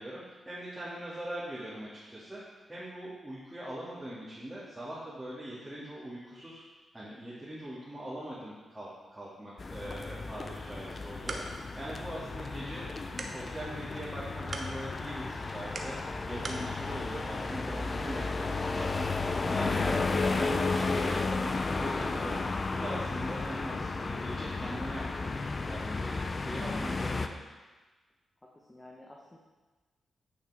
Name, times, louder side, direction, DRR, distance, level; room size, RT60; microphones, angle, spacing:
voice 1, 0.0-2.4 2.7-6.6 6.9-12.9 13.2-16.0 16.3-19.9 20.3-27.3, right 1 dB, 15° right, -10 dB, 2.7 m, -41 dB
sound 1, 9.6-27.3, left 3 dB, 45° left, 0.6 m, -33 dB
sound 2, 10.9-16.7, right 2 dB, 45° right, 1.0 m, -45 dB
voice 2, 28.4-29.4, left 1 dB, 20° left, -2 dB, 1.2 m, -53 dB
9.1 x 5.7 x 3.7 m, 1.3 s
supercardioid pair, 50°, 0 cm